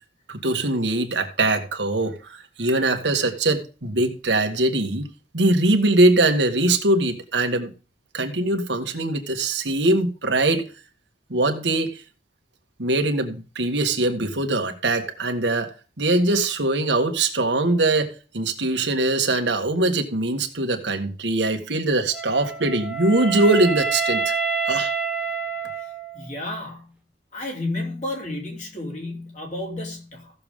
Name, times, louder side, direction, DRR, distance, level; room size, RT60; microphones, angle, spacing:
voice 1, 0.3-5.1 5.3-7.7 8.1-10.6 11.3-11.9 12.8-24.3 24.7-24.9, right 2 dB, 90° right, 1.7 m, -22 dB
Wind instrument woodwind instrument, 22.1-26.3, right 4 dB, 5° right, 1.4 m, -27 dB
voice 2, 26.1-26.9 27.3-30.3, left 2 dB, 40° left, 3.6 m, -31 dB
15.5 x 7.0 x 3.7 m
head